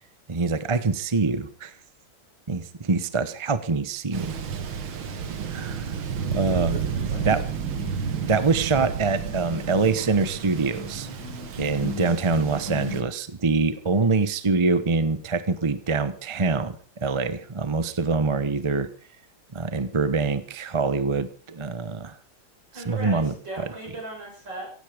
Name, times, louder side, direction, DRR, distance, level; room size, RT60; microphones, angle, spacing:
voice 1, 0.3-1.7 2.5-4.3 5.5-5.9 6.3-6.7 7.2-7.4 8.3-11.1 11.6-16.8 17.0-18.9 19.5-22.1 22.8-23.3, right 4 dB, 35° right, 12 dB, 0.4 m, -24 dB
Thunder, 4.1-13.0, right 7 dB, 70° right, 2.3 m, -31 dB
sound 1, 6.2-13.1, left 4 dB, 10° left, 2.2 m, -40 dB
voice 2, 6.5-7.4 22.7-24.7, right 2 dB, 55° right, 0 dB, 7.4 m, -38 dB
16.0 x 15.5 x 5.1 m, 0.43 s
omnidirectional pair, 2.3 m